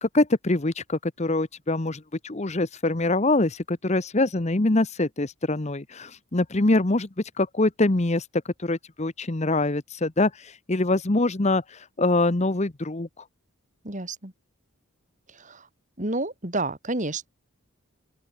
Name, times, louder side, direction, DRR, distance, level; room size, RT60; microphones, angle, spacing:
voice 1, 0.0-7.1 7.4-8.3 8.6-13.1, left 2 dB, 30° left, 0.9 m, -24 dB
voice 2, 13.8-14.3 15.3-15.7 16.0-17.3, right 2 dB, 35° right, 3.0 m, -30 dB
open air
head